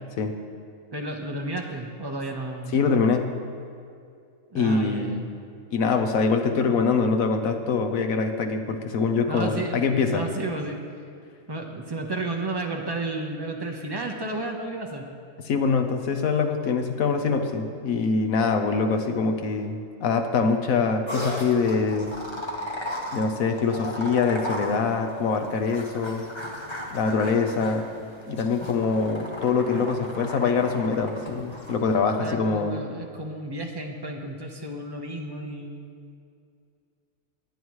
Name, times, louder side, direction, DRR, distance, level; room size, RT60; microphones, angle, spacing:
voice 1, 0.9-2.8 4.5-5.3 9.3-10.8 11.5-15.1 32.2-35.9, right 2 dB, 20° right, 2 dB, 0.9 m, -32 dB
voice 2, 2.7-3.3 4.5-5.3 5.7-10.2 15.4-22.1 23.1-26.3 26.9-27.9 28.3-32.8, left 4 dB, 85° left, 6 dB, 1.3 m, -24 dB
sound 1, 21.1-32.0, left 1 dB, 20° left, 1.2 m, -36 dB
21.0 x 8.8 x 3.2 m, 2.4 s
omnidirectional pair, 1.4 m